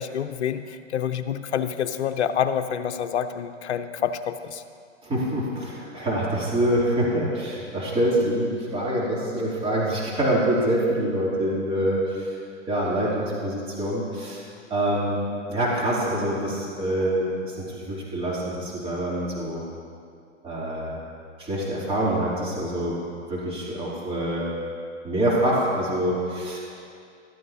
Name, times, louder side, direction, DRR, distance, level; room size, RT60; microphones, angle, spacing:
voice 1, 0.0-4.6, left 8 dB, 65° left, 9 dB, 0.7 m, -27 dB
voice 2, 5.0-12.3 12.7-14.4 14.7-19.6 20.4-21.0 21.4-23.0 23.3-24.5 25.0-26.6, right 1 dB, 15° right, -6 dB, 2.9 m, -25 dB
14.5 x 12.5 x 2.8 m, 2.3 s
figure-of-eight pair, 110°, 36 cm